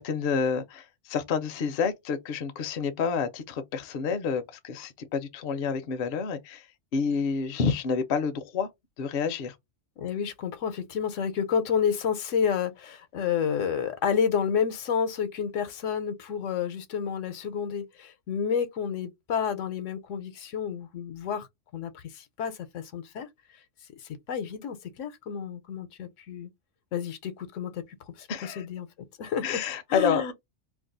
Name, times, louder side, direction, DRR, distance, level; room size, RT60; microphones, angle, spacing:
voice 1, 0.0-6.7 6.9-8.7 9.0-9.5 28.3-28.6 29.4-30.2, left 6 dB, 60° left, 0.7 m, -29 dB
voice 2, 10.0-21.5 21.7-23.3 24.3-26.5 26.9-27.8 28.2-28.9 29.2-29.6 29.9-30.3, left 7 dB, 80° left, 1.0 m, -30 dB
2.6 x 2.3 x 3.8 m
omnidirectional pair, 1.3 m